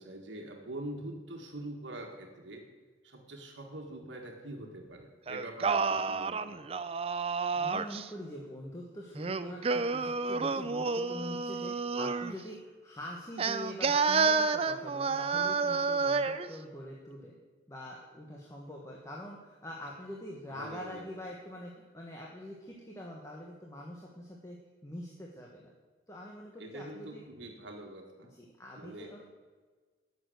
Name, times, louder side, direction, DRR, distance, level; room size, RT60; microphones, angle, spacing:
voice 1, 0.0-2.6 3.0-6.7 20.5-21.1 26.6-28.3 28.8-29.1, right 1 dB, 80° right, 2 dB, 1.6 m, -44 dB
Singing, 5.3-8.1 9.2-12.4 13.4-16.5, right 4 dB, 30° right, 0.4 m, -30 dB
voice 2, 7.5-17.3 17.7-24.6 24.8-25.7 26.1-27.2 28.3-29.2, left 1 dB, 15° left, -2 dB, 1.3 m, -44 dB
11.5 x 7.0 x 7.9 m, 1.4 s
head